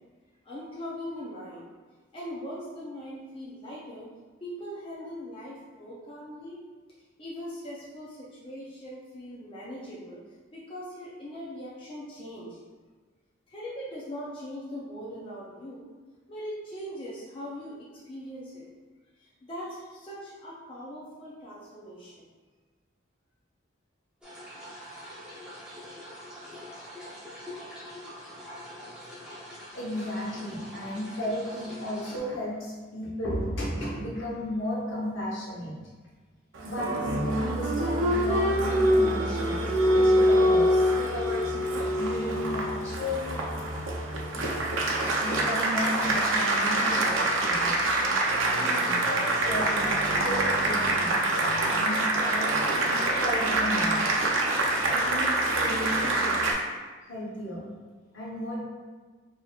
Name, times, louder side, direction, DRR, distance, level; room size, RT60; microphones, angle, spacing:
voice 1, 0.4-1.7 2.1-4.1 4.4-6.6 7.2-10.2 10.5-12.6 13.5-15.9 16.3-18.7 19.2-22.3, equal, 30° left, -7 dB, 0.5 m, -40 dB
sound 1, 24.2-32.2, equal, 5° right, 0.8 m, -44 dB
voice 2, 29.7-35.7 36.6-40.8 41.9-43.5 44.9-47.9 48.6-51.1 51.7-52.5 52.8-54.0 54.9-56.4 57.1-57.6 58.1-58.6, left 1 dB, 75° left, -5 dB, 1.0 m, -34 dB
Applause, 36.5-56.5, right 1 dB, 90° right, 0.6 m, -25 dB
4.2 x 2.8 x 2.4 m, 1.4 s
head